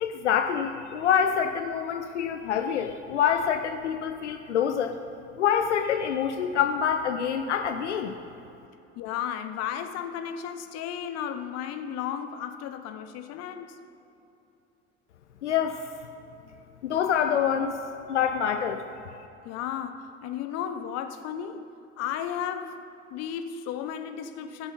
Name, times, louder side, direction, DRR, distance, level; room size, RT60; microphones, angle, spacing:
voice 1, 0.0-5.0 5.4-8.1 15.4-15.8 16.8-17.8 18.1-18.8, left 8 dB, 75° left, 6 dB, 0.6 m, -26 dB
voice 2, 9.0-13.8 19.4-21.6 22.0-22.8 23.1-24.7, left 9 dB, 45° left, 8 dB, 0.8 m, -34 dB
16.5 x 7.1 x 4.1 m, 2.9 s
figure-of-eight pair, 60°, 35 cm